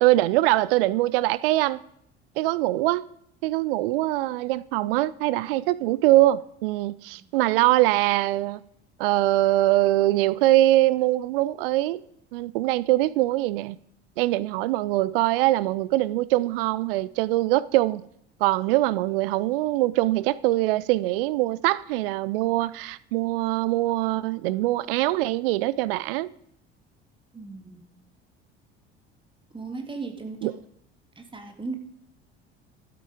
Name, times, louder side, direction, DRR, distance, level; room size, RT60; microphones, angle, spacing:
voice 1, 0.0-1.8 2.4-3.0 3.4-8.6 9.0-12.0 12.3-13.8 14.2-18.0 18.4-26.3 30.4-30.5, right 17 dB, 60° right, 0.4 m, -23 dB
voice 2, 27.3-27.8 29.5-30.6 31.2-31.7, right 3 dB, 15° right, 2.1 m, -36 dB
12.5 x 8.8 x 5.0 m
figure-of-eight pair, 60°, 32 cm